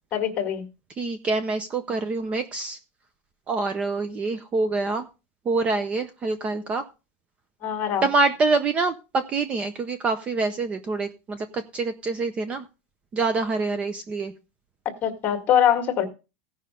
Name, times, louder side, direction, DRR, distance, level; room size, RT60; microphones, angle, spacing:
voice 1, 0.1-0.7 7.6-8.1 15.0-16.1, left 9 dB, 25° left, 5 dB, 1.7 m, -23 dB
voice 2, 1.0-2.8 3.5-5.1 5.5-6.8 8.0-12.7 13.1-14.3, right 3 dB, 15° right, 10 dB, 0.6 m, -26 dB
16.0 x 5.5 x 5.0 m, 0.30 s
supercardioid pair, 180°, 7 cm